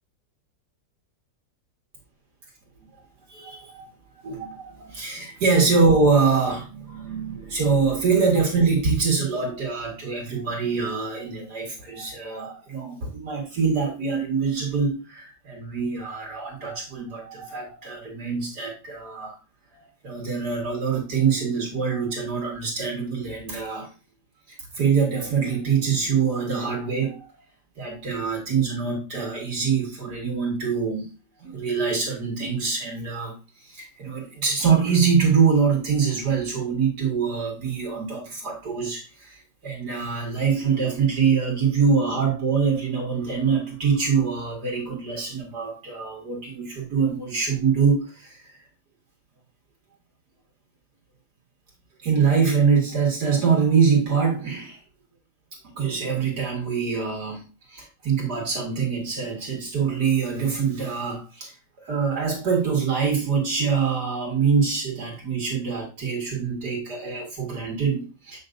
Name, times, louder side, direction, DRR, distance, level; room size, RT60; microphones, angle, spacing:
voice 1, 3.3-3.9 4.2-19.4 19.7-23.9 24.5-27.3 27.8-31.1 31.4-33.4 33.6-48.6 52.0-54.8 55.6-68.4, right 5 dB, 65° right, 0 dB, 2.5 m, -24 dB
7.8 x 6.0 x 2.6 m, 0.31 s
omnidirectional pair, 1.8 m